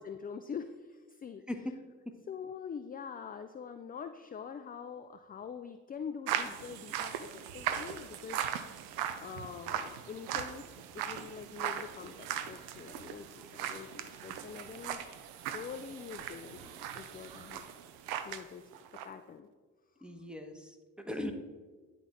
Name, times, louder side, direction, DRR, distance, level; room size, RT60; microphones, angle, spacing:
voice 1, 0.0-1.4 2.3-8.4 9.2-15.0 15.4-17.6 18.2-19.5 20.0-20.1, left 6 dB, 25° left, 9 dB, 0.3 m, -45 dB
sound 1, 6.3-18.5 18.7-19.1, right 9 dB, 85° right, 0.5 m, -39 dB
voice 2, 20.0-21.3, left 1 dB, ahead, 5 dB, 1.0 m, -39 dB
10.0 x 4.0 x 3.6 m, 1.4 s
hypercardioid pair, 45°, 38 cm